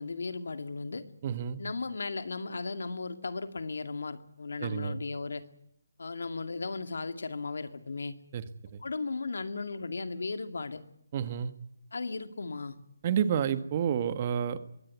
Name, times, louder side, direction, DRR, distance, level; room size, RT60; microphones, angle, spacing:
voice 1, 0.0-1.1 1.6-5.4 6.0-8.1 8.8-10.8 11.9-12.8, left 3 dB, 75° left, 9 dB, 2.3 m, -36 dB
voice 2, 1.2-1.6 4.6-5.0 8.3-8.4 8.7-8.8 11.1-11.5 13.0-14.6, right 8 dB, 35° right, 12 dB, 1.6 m, -29 dB
23.0 x 17.5 x 9.5 m, 0.74 s
figure-of-eight pair, 155°, 0 cm